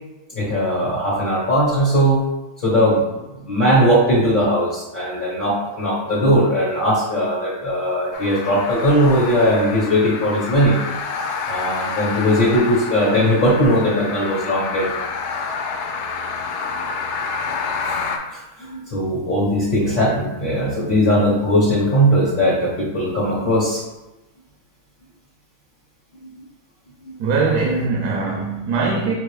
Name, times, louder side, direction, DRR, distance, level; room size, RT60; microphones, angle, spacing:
voice 1, 0.3-2.2 2.6-3.0 3.5-10.8 11.5-14.9 17.9-18.0 18.3-18.4 18.7-23.8, equal, 40° left, -8 dB, 1.0 m, -19 dB
sound 1, 8.1-18.2, left 5 dB, 90° left, 1.1 m, -28 dB
voice 2, 27.2-29.1, right 4 dB, 85° right, 0 dB, 1.1 m, -21 dB
5.9 x 2.6 x 3.2 m, 1.0 s
omnidirectional pair, 1.6 m